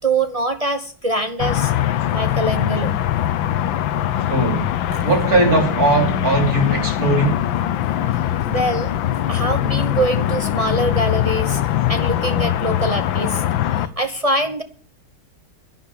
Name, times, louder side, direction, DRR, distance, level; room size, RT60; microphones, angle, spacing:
voice 1, 0.0-1.7 2.1-3.0 4.9-5.1 8.1-9.0 9.3-11.6 11.9-13.4 13.7-14.6, right 2 dB, 60° right, 0.3 m, -23 dB
sound 1, 1.4-13.9, left 12 dB, 70° left, 1.5 m, -22 dB
voice 2, 4.1-4.7 5.0-7.4, right 1 dB, 45° right, 4.0 m, -19 dB
11.0 x 10.5 x 7.0 m
omnidirectional pair, 2.2 m